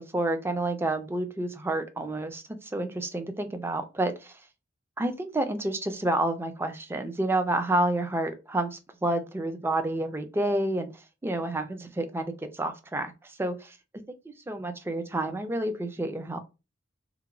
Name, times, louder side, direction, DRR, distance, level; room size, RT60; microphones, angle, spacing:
voice 1, 0.0-4.1 5.0-10.9 11.2-13.7 14.1-16.4, right 1 dB, 10° right, 0.3 m, -29 dB
2.9 x 2.2 x 2.5 m
head